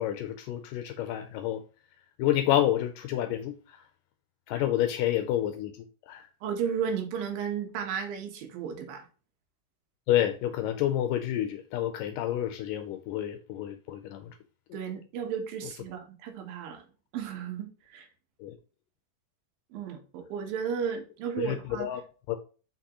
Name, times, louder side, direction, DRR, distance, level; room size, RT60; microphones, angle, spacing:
voice 1, 0.0-1.6 2.2-3.6 4.5-5.7 6.1-6.3 10.1-14.3 18.4-18.5 21.4-22.0 22.3-22.4, left 12 dB, 80° left, 2.2 m, -29 dB
voice 2, 6.4-9.1 14.7-16.8 17.1-18.1 19.7-21.9, right 7 dB, 85° right, 2.9 m, -34 dB
6.0 x 6.0 x 3.0 m
omnidirectional pair, 4.0 m